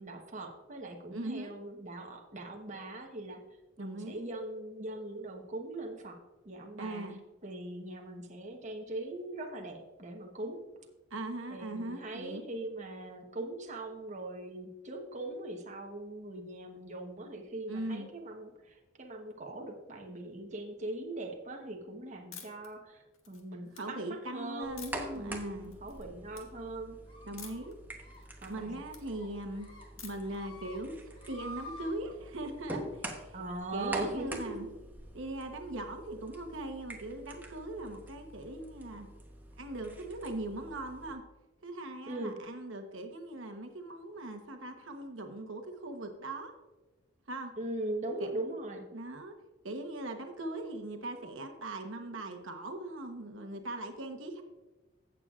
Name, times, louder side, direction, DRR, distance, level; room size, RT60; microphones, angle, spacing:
voice 1, 0.0-3.4 3.8-6.2 6.4-7.0 7.4-10.6 11.5-24.9 25.1-27.0 28.4-28.8 33.3-34.6 42.1-42.4 47.6-48.9, right 2 dB, 40° right, 2 dB, 1.1 m, -40 dB
voice 2, 1.1-1.5 3.8-4.3 6.8-7.2 11.1-12.4 17.7-18.1 23.7-25.7 27.2-27.7 28.5-29.7 30.0-33.3 33.7-34.7 35.1-39.1 39.6-41.2 41.6-46.5 47.3-47.5 48.9-49.3 49.6-54.4, right 1 dB, 75° right, 5 dB, 1.0 m, -40 dB
sound 1, 22.3-22.7 23.1-23.8 24.8-25.2 25.6-26.0 26.3-26.5 27.4-27.7 28.1-29.0 30.0-30.4, left 7 dB, 90° left, 1.5 m, -49 dB
sound 2, 24.6-41.1, right 1 dB, 10° right, 1.0 m, -46 dB
sound 3, 27.1-27.7 28.0-28.2 28.5-28.8 29.1-29.8 30.2-30.8 31.1-31.9, left 1 dB, 30° left, 2.7 m, -49 dB
15.5 x 7.0 x 2.4 m, 1.1 s
head